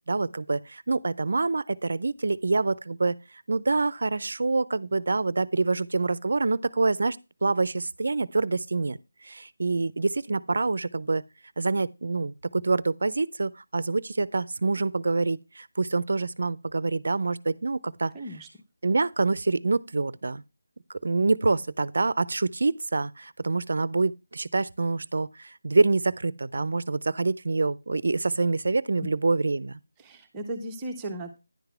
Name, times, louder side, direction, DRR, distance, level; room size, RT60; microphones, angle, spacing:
voice 1, 0.1-3.2 3.5-11.2 11.6-18.1 18.8-20.4 21.0-29.8, right 3 dB, 55° right, 0.4 m, -26 dB
voice 2, 18.1-18.5 29.0-29.1 30.0-31.4, right 1 dB, 10° right, 0.6 m, -36 dB
10.0 x 4.0 x 5.6 m
figure-of-eight pair, 175°, 0 cm